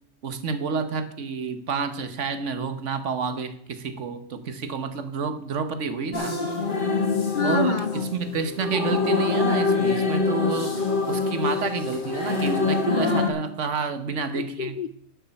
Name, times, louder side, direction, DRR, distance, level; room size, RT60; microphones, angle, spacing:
voice 1, 0.2-6.4 7.4-14.8, right 5 dB, 70° right, 1.4 m, -29 dB
sound 1, 6.1-13.3, left 3 dB, 40° left, 2.0 m, -25 dB
voice 2, 6.4-7.0 7.3-8.1 14.4-14.9, left 6 dB, 65° left, 0.5 m, -29 dB
11.0 x 6.4 x 7.0 m
omnidirectional pair, 1.3 m